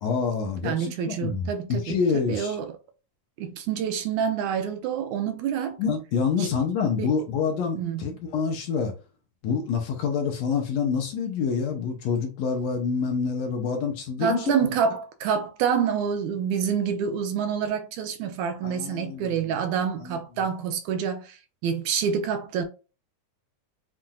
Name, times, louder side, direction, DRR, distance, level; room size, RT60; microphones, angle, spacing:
voice 1, 0.0-2.6 5.8-8.9 9.4-14.5 18.6-19.5 20.0-20.2, left 5 dB, 70° left, 1.9 m, -27 dB
voice 2, 0.6-2.7 3.4-5.8 6.4-6.5 7.0-7.1 7.7-8.0 14.2-22.7, right 7 dB, 80° right, 1.9 m, -27 dB
7.5 x 2.6 x 2.3 m
omnidirectional pair, 3.5 m